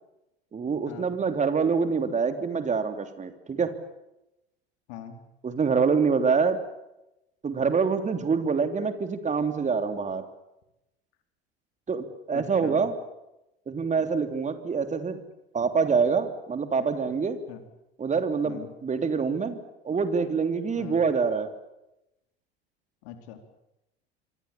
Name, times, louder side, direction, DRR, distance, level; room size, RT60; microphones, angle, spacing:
voice 1, 0.5-3.7 5.4-6.6 7.4-10.2 11.9-12.9 13.7-15.2 15.5-17.4 18.0-19.6 19.8-21.5, right 5 dB, 20° right, 8 dB, 3.3 m, -25 dB
voice 2, 4.9-5.2 12.3-12.8 17.5-17.6 18.4-18.7 20.8-21.0 23.0-23.4, left 9 dB, 60° left, 7 dB, 4.3 m, -41 dB
28.0 x 24.0 x 7.2 m, 0.90 s
figure-of-eight pair, 75°, 32 cm